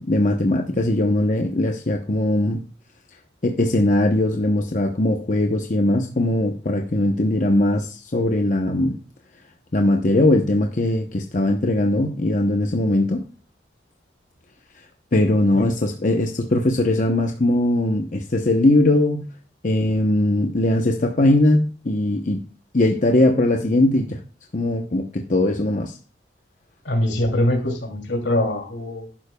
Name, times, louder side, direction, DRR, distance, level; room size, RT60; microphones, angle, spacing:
voice 1, 0.0-2.6 3.4-9.0 9.7-13.2 15.1-19.3 19.6-22.4 22.7-24.2 24.5-26.0, left 1 dB, 45° left, 0.9 m, -20 dB
voice 2, 26.8-29.1, left 1 dB, 80° left, 2.8 m, -23 dB
12.0 x 11.0 x 2.3 m
head